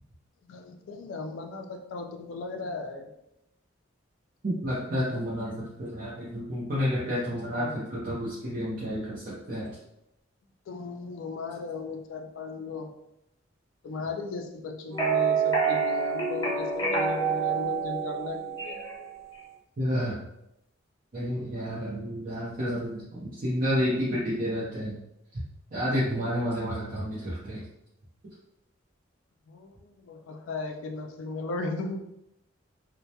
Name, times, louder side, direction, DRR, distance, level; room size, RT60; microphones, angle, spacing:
voice 1, 0.4-3.1 7.3-7.8 10.7-12.9 13.8-19.1 21.7-22.1 29.5-32.0, left 3 dB, 75° left, 3 dB, 0.3 m, -37 dB
voice 2, 4.4-9.7 19.8-20.2 21.1-25.0 25.7-27.6, equal, 45° right, -9 dB, 0.6 m, -30 dB
sound 1, 14.9-19.0, right 5 dB, 20° left, 0.8 m, -27 dB
2.1 x 2.1 x 2.7 m, 0.82 s
head